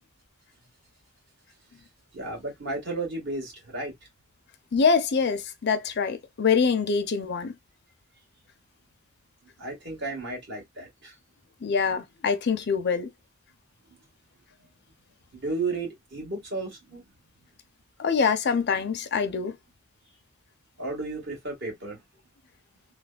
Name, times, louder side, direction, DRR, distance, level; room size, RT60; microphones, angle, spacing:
voice 1, 2.1-3.9 9.6-11.2 15.3-17.0 20.8-22.0, right 3 dB, 60° right, 1.7 m, -33 dB
voice 2, 4.7-7.5 11.6-13.1 18.0-19.5, left 5 dB, 55° left, 0.5 m, -24 dB
3.2 x 2.1 x 2.3 m
head